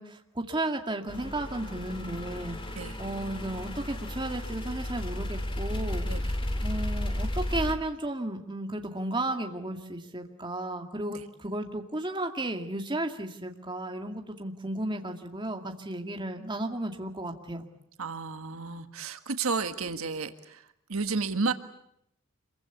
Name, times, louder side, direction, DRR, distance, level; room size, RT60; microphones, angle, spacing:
voice 1, 0.0-6.2 6.6-17.7, right 1 dB, 20° right, 3 dB, 2.2 m, -34 dB
sound 1, 1.1-7.7, left 1 dB, 25° left, 2.4 m, -33 dB
voice 2, 6.1-6.4 11.1-11.2 18.0-20.6 20.9-21.5, right 4 dB, 80° right, 8 dB, 1.6 m, -32 dB
26.5 x 23.0 x 8.3 m, 0.75 s
head